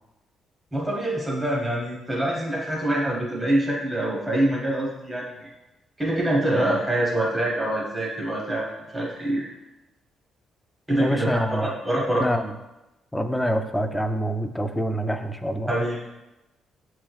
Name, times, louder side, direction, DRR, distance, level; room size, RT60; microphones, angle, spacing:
voice 1, 0.7-5.5 6.0-9.4 10.9-12.3 15.7-16.0, right 1 dB, 15° right, -4 dB, 0.9 m, -25 dB
voice 2, 11.0-11.7 12.2-12.5 13.1-15.7, equal, 5° left, 6 dB, 0.4 m, -26 dB
7.3 x 3.1 x 2.3 m, 1.0 s
cardioid pair, 90°, 0 cm